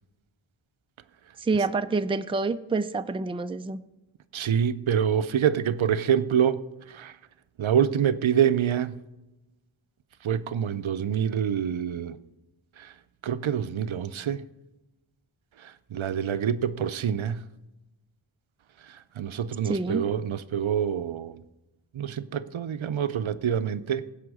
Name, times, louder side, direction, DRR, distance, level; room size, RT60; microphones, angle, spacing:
voice 1, 1.4-3.8 19.7-20.0, right 3 dB, 15° right, 0.4 m, -27 dB
voice 2, 4.3-6.6 6.9-7.2 7.6-9.0 10.2-12.2 12.8-12.9 13.2-14.4 15.6-17.4 18.9-21.4 21.9-24.1, right 8 dB, 80° right, 0.6 m, -26 dB
16.0 x 5.7 x 4.8 m
wide cardioid pair, 55°, 47 cm